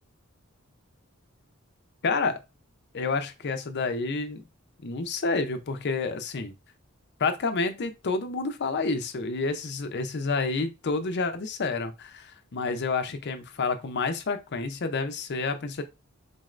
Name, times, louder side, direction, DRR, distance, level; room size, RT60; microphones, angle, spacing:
voice 1, 2.0-2.4 2.9-4.4 4.8-6.6 7.2-15.8, left 4 dB, 55° left, 0.5 m, -29 dB
4.0 x 2.5 x 3.1 m
head